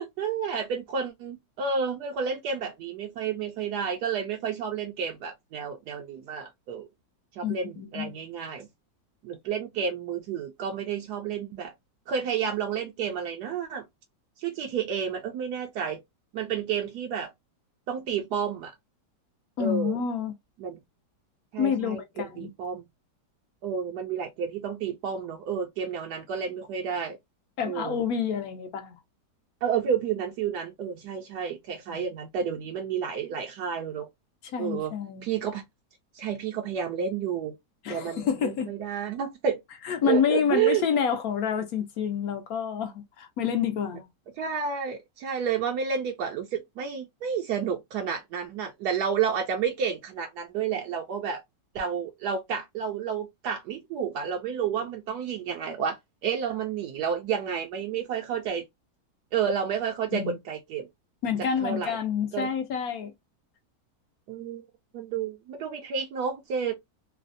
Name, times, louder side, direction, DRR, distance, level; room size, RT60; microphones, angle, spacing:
voice 1, 0.0-6.9 7.4-8.7 9.2-11.7 12.1-13.8 14.4-16.0 16.3-17.3 17.9-18.7 19.6-20.0 20.6-20.8 21.5-22.8 23.6-27.2 27.6-28.0 29.6-34.1 34.6-34.9 35.2-35.6 36.1-37.6 37.9-39.6 40.0-40.8 44.4-51.4 51.7-58.6 59.3-60.9 61.6-62.0 62.3-62.5 64.3-64.6 64.9-66.7, right 7 dB, 75° right, 1.1 m, -30 dB
voice 2, 7.4-8.1 19.6-20.3 21.6-22.5 27.6-29.0 31.9-32.0 34.5-35.3 37.8-38.7 39.8-44.0 60.1-60.4 61.2-63.1, left 7 dB, 70° left, 1.0 m, -28 dB
3.1 x 2.0 x 2.5 m
omnidirectional pair, 1.9 m